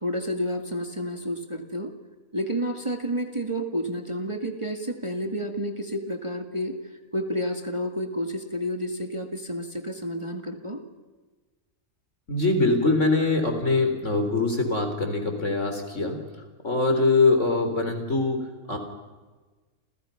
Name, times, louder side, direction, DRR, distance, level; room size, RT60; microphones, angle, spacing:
voice 1, 0.0-1.9 2.3-6.8 7.1-10.8, equal, 20° right, 4 dB, 2.1 m, -30 dB
voice 2, 12.3-16.2 16.6-18.8, left 3 dB, 55° left, 5 dB, 4.6 m, -23 dB
30.0 x 29.0 x 5.9 m, 1.3 s
omnidirectional pair, 1.5 m